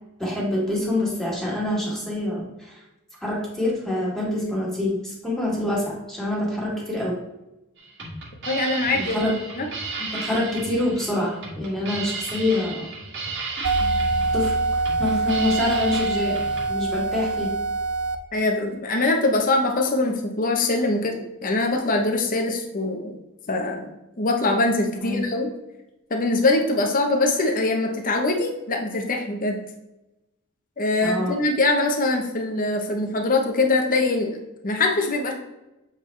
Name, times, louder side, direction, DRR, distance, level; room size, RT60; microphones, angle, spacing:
voice 1, 0.2-2.8 3.2-7.2 9.0-9.4 10.0-12.9 14.3-16.4 16.7-17.6 25.0-25.2 31.0-31.4, left 1 dB, ahead, -4 dB, 2.1 m, -26 dB
sound 1, 7.8-16.6, right 3 dB, 60° right, 2.0 m, -34 dB
voice 2, 8.5-9.3 9.6-9.7 18.3-23.1 23.5-23.9 24.2-25.5 26.1-29.6 30.8-35.3, left 2 dB, 40° left, 2 dB, 0.9 m, -23 dB
sound 2, 13.6-18.2, right 3 dB, 75° right, 0.7 m, -24 dB
7.8 x 5.0 x 3.2 m, 0.97 s
head